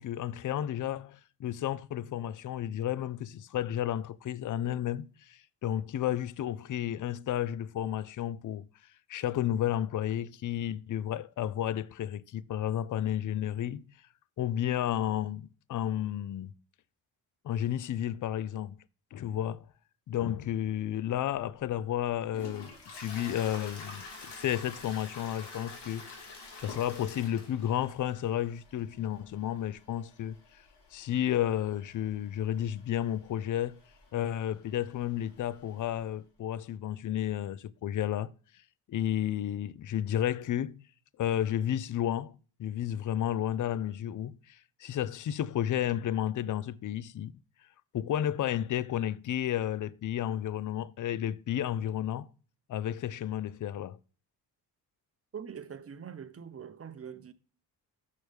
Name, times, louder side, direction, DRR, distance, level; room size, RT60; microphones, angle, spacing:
voice 1, 0.0-8.7 9.1-13.9 14.4-16.5 17.4-18.8 19.1-19.7 20.1-24.0 24.3-26.3 26.6-30.4 30.9-33.8 34.1-38.3 38.9-40.8 41.2-47.3 47.9-52.3 52.7-54.0, left 11 dB, 45° left, 0.5 m, -32 dB
Toilet flush, 21.8-36.0, left 3 dB, 60° left, 2.6 m, -49 dB
voice 2, 55.3-57.3, right 7 dB, 30° right, 0.8 m, -43 dB
6.4 x 6.2 x 3.4 m
cardioid pair, 70°, 45 cm